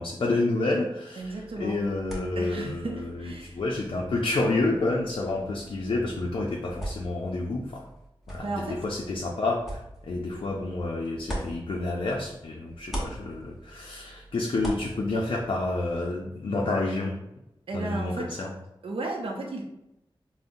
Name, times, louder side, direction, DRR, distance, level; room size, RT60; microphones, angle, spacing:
voice 1, 0.0-1.3 1.6-7.9 8.3-17.2 17.7-18.5, left 2 dB, 65° left, -2 dB, 0.4 m, -29 dB
sound 1, 1.2-12.4 12.7-16.1, right 1 dB, ahead, 0.9 m, -42 dB
voice 2, 1.2-1.8 2.4-3.6 8.4-8.8 17.7-18.3 18.8-19.6, right 2 dB, 75° right, 1 dB, 0.5 m, -34 dB
3.6 x 2.0 x 2.6 m, 0.87 s
wide cardioid pair, 75°, 10 cm